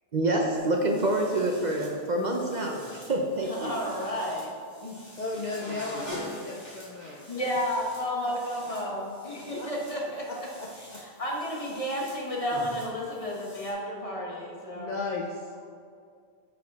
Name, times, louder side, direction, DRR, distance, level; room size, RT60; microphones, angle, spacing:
voice 1, 0.1-3.7, right 1 dB, 45° right, 1 dB, 0.8 m, -27 dB
sound 1, 0.6-13.7, equal, 15° left, 2.1 m, -47 dB
voice 2, 3.4-4.5 4.8-4.9 6.1-6.3 7.3-10.5 11.0-14.9, equal, 35° left, -3 dB, 1.3 m, -32 dB
voice 3, 5.2-7.2 8.3-8.8 9.5-11.0 14.8-15.5, left 3 dB, 50° left, -1 dB, 0.7 m, -36 dB
9.9 x 5.0 x 3.5 m, 2.2 s
omnidirectional pair, 1.1 m